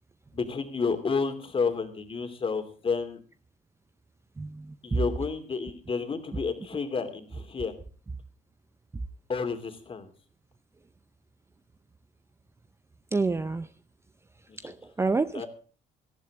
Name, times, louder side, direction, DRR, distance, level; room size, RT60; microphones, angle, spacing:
voice 1, 0.3-3.2 4.8-7.7 9.3-10.1 14.5-14.7 15.3-15.5, left 5 dB, 30° left, 7 dB, 2.9 m, -30 dB
voice 2, 4.4-5.0 13.1-13.7 14.6-15.4, right 3 dB, 15° right, 13 dB, 0.6 m, -28 dB
18.5 x 14.0 x 3.6 m, 0.39 s
cardioid pair, 110°, 17 cm